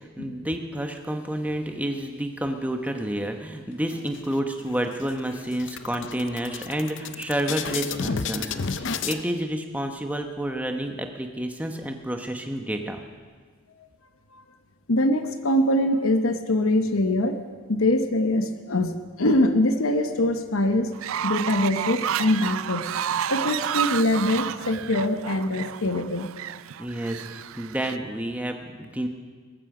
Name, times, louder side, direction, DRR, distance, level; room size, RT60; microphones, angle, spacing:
voice 1, 0.2-13.0 26.8-29.1, right 1 dB, 5° right, 4 dB, 1.1 m, -30 dB
sound 1, 3.9-4.6 5.0-5.1 5.4-9.2, left 5 dB, 60° left, 0.7 m, -32 dB
voice 2, 14.9-17.4 17.7-22.9 23.3-26.3, left 1 dB, 80° left, 8 dB, 1.0 m, -23 dB
Fowl, 20.9-28.0, right 9 dB, 80° right, 0.4 m, -30 dB
19.0 x 14.0 x 5.0 m, 1.5 s
head